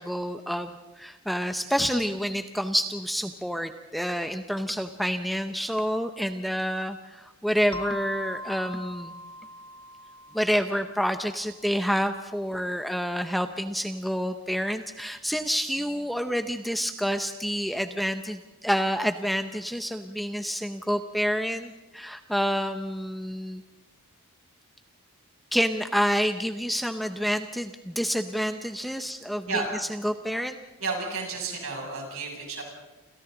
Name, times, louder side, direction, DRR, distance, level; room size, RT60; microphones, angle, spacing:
voice 1, 0.0-9.1 10.3-23.6 25.5-29.6 29.9-30.6, equal, ahead, 7 dB, 0.7 m, -28 dB
sound 1, 7.7-12.1, left 1 dB, 20° left, 1.0 m, -42 dB
voice 2, 30.8-32.6, right 4 dB, 65° right, 0 dB, 7.2 m, -31 dB
28.5 x 28.0 x 3.9 m, 1.1 s
head